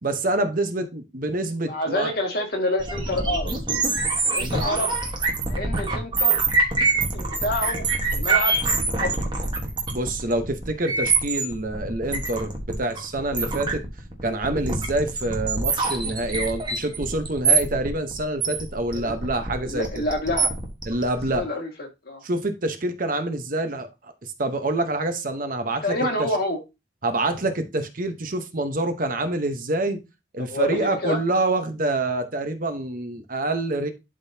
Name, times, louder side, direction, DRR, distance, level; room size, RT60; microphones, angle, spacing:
voice 1, 0.0-2.1 4.4-4.6 9.9-13.8 14.2-20.0 20.9-21.5 22.2-25.8 26.2-26.3 27.0-30.0 30.3-33.9, right 2 dB, 45° right, 0.9 m, -26 dB
voice 2, 1.6-3.5 4.2-4.9 5.5-6.4 7.1-7.8 8.1-8.6 9.0-9.3 18.9-19.2 19.6-20.5 21.3-22.2 25.8-26.6 30.4-31.2, left 1 dB, 50° left, 2.0 m, -27 dB
sound 1, 2.8-21.4, right 3 dB, 25° right, 1.3 m, -25 dB
11.5 x 3.9 x 2.8 m
head